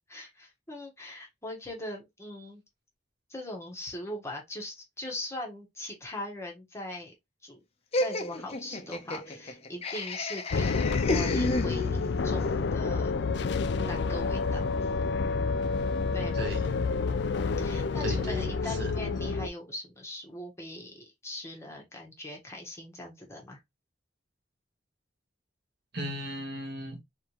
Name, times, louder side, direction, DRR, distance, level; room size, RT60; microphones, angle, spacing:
voice 1, 0.1-2.6 3.3-7.1 7.4-7.6 8.0-13.1 13.8-14.7 16.1-16.5 17.4-23.6, left 1 dB, 15° left, 1.3 m, -40 dB
Laughter, 7.9-12.2, left 1 dB, 35° left, 0.8 m, -32 dB
sound 1, 10.5-19.5, left 4 dB, 65° left, 0.4 m, -29 dB
voice 2, 16.3-16.9 18.0-18.9 25.9-27.0, right 1 dB, 60° right, 1.4 m, -36 dB
3.7 x 3.5 x 3.0 m
head